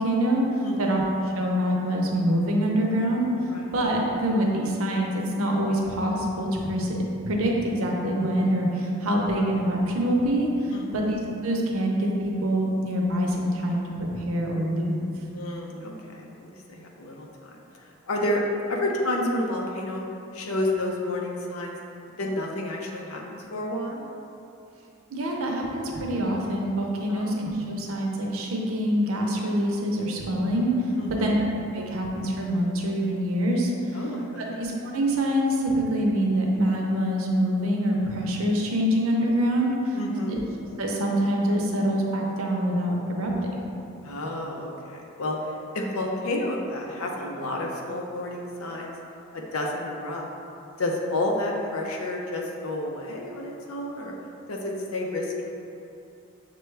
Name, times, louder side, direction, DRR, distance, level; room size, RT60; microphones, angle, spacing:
voice 1, 0.0-3.3 3.7-15.0 25.1-30.9 31.2-31.4 31.7-34.0 34.4-40.0 40.3-40.4 40.8-43.6, equal, 80° right, -1 dB, 0.6 m, -25 dB
voice 2, 0.6-1.0 3.5-3.8 10.7-11.1 15.3-18.4 18.7-20.0 20.3-21.8 22.2-24.0 27.1-27.4 31.0-31.4 33.9-34.6 39.9-40.4 44.0-48.9 49.3-50.3 50.8-54.1 54.5-55.4, left 1 dB, 85° left, 0 dB, 0.6 m, -30 dB
6.5 x 2.2 x 3.2 m, 2.7 s
head